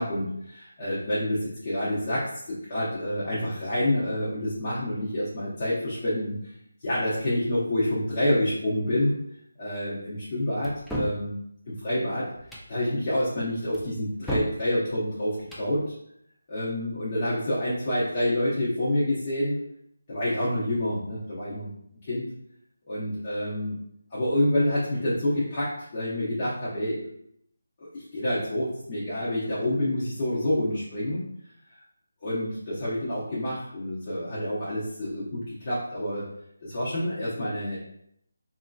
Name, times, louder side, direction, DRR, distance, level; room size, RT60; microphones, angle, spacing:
voice 1, 0.0-6.4 6.8-9.2 9.6-11.4 11.7-12.3 12.7-15.9 16.5-19.6 20.1-21.7 22.0-22.3 22.9-23.8 24.1-27.1 27.8-31.2 31.7-31.8 32.2-36.2 36.6-37.8, left 1 dB, 35° left, -9 dB, 0.8 m, -28 dB
sound 1, 10.6-11.2 12.4-12.7 13.7-14.6 15.3-15.7, equal, ahead, 0.3 m, -32 dB
2.9 x 2.6 x 2.3 m, 0.73 s
figure-of-eight pair, 165°, 0 cm